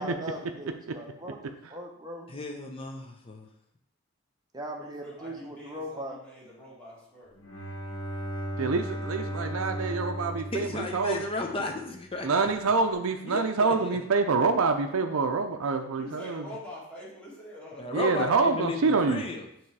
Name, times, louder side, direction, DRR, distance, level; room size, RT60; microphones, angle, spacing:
voice 1, 0.0-1.4 1.7-2.3 4.5-6.2, equal, 20° right, 0 dB, 0.8 m, -39 dB
voice 2, 2.3-3.5 10.5-12.5 13.3-14.0 17.8-19.4, left 2 dB, 25° left, 3 dB, 0.6 m, -34 dB
voice 3, 4.8-7.3 12.6-12.8 15.8-17.9, left 1 dB, 5° left, -8 dB, 2.0 m, -45 dB
Bowed string instrument, 7.4-11.9, right 1 dB, 70° left, 1.3 m, -36 dB
voice 4, 8.6-11.2 12.2-16.4 17.9-19.2, right 4 dB, 75° right, 5 dB, 0.5 m, -26 dB
7.2 x 3.1 x 4.7 m, 0.76 s
head